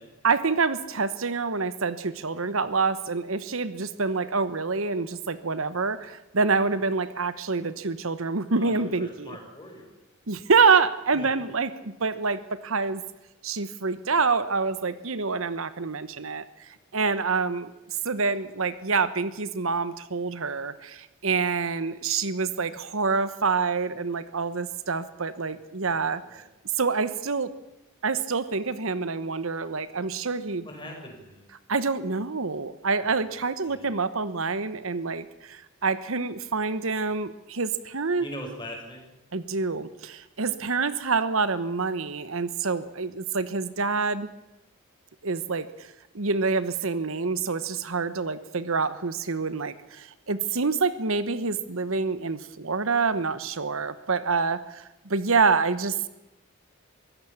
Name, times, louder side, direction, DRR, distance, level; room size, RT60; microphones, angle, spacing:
voice 1, 0.2-9.4 10.3-13.0 13.4-26.4 26.8-27.5 28.0-30.7 31.7-38.3 39.3-44.3 45.2-56.1, right 4 dB, 70° right, 14 dB, 1.1 m, -27 dB
voice 2, 8.5-9.9 11.1-11.3 25.8-26.0 26.3-26.4 30.6-31.5 33.6-33.9 38.2-39.1, equal, 20° left, 1 dB, 6.0 m, -41 dB
23.5 x 16.0 x 7.2 m, 0.94 s
head